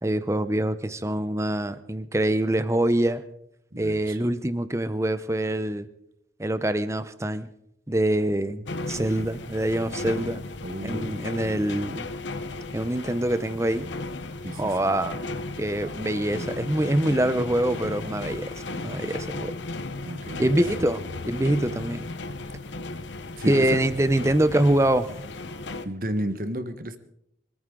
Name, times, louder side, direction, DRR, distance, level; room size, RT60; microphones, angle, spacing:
voice 1, 0.0-3.2 3.8-5.9 6.4-7.5 7.9-10.4 10.8-12.1 12.7-13.9 14.6-15.2 15.6-19.5 20.4-22.1 23.5-25.1, right 1 dB, 15° right, 13 dB, 0.7 m, -25 dB
voice 2, 3.7-4.2 10.6-11.6 14.4-14.7 15.8-16.5 20.0-20.6 23.4-23.8 25.8-27.0, right 1 dB, 50° right, 10 dB, 1.3 m, -33 dB
sound 1, 8.7-25.9, left 2 dB, 85° left, 0.9 m, -35 dB
25.0 x 14.0 x 3.8 m, 0.78 s
head